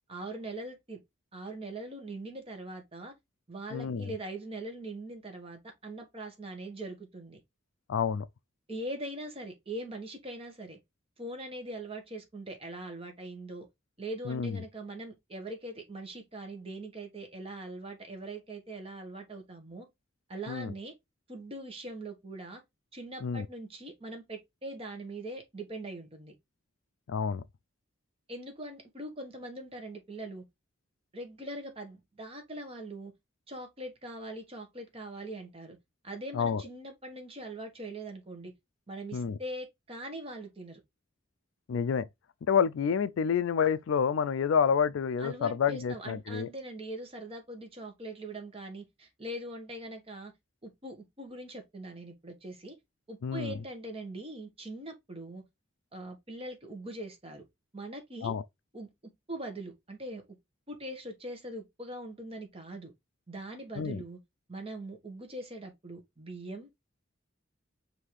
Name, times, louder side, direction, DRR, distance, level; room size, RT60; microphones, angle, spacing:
voice 1, 0.1-1.0 1.3-3.1 3.5-7.4 8.7-10.8 11.2-13.7 14.0-19.9 20.3-20.9 21.3-22.6 22.9-26.3 28.3-30.4 31.1-33.1 33.5-35.8 36.0-38.5 38.9-40.8 45.2-50.3 50.6-52.8 53.1-55.4 55.9-57.4 57.7-58.3 58.7-58.9 59.3-60.2 60.7-62.9 63.3-64.2 64.5-66.7, right 1 dB, 30° right, 1.2 m, -42 dB
voice 2, 3.7-4.1 7.9-8.3 14.3-14.6 20.5-20.7 23.2-23.5 27.1-27.4 36.3-36.6 39.1-39.4 41.7-42.1 42.5-46.5 53.2-53.6 58.2-58.4 63.8-64.0, left 7 dB, 80° left, 0.3 m, -28 dB
5.3 x 2.8 x 3.1 m
head